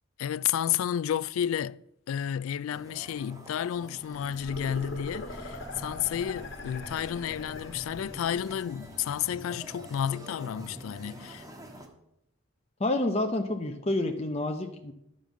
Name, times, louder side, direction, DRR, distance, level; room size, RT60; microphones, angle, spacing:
voice 1, 0.2-1.8 2.1-11.4, left 9 dB, 80° left, 0.3 m, -31 dB
sound 1, 2.7-11.9, right 1 dB, 15° right, 1.3 m, -47 dB
sound 2, 4.1-9.4, left 2 dB, 55° left, 1.5 m, -42 dB
voice 2, 12.8-14.9, left 2 dB, 30° left, 0.7 m, -28 dB
12.0 x 5.3 x 7.4 m
head